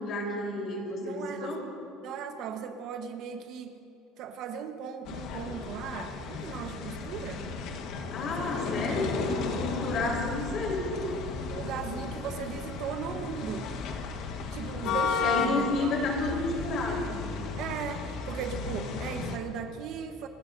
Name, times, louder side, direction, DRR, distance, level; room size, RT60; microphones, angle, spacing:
voice 1, 0.0-1.7 8.1-10.8 15.2-17.2, left 2 dB, 40° left, -1 dB, 3.9 m, -31 dB
voice 2, 1.0-1.6 2.0-3.8 4.2-7.5 8.4-8.9 11.5-13.7 14.5-15.9 17.6-20.3, right 7 dB, 55° right, 6 dB, 1.1 m, -37 dB
sound 1, 5.0-19.4, left 5 dB, 60° left, 1.4 m, -34 dB
29.0 x 16.5 x 2.7 m, 2.8 s
cardioid pair, 155°, 0 cm